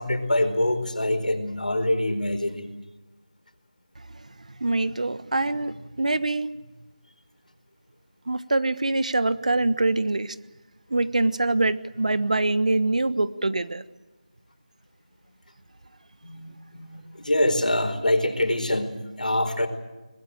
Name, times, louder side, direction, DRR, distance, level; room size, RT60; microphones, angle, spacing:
voice 1, 0.0-2.7 16.2-19.7, left 1 dB, 75° left, 7 dB, 4.6 m, -25 dB
voice 2, 4.6-6.5 8.3-10.3 10.9-13.8, right 2 dB, 60° right, 14 dB, 1.3 m, -24 dB
22.0 x 20.0 x 9.1 m, 1.1 s
figure-of-eight pair, 165°, 4 cm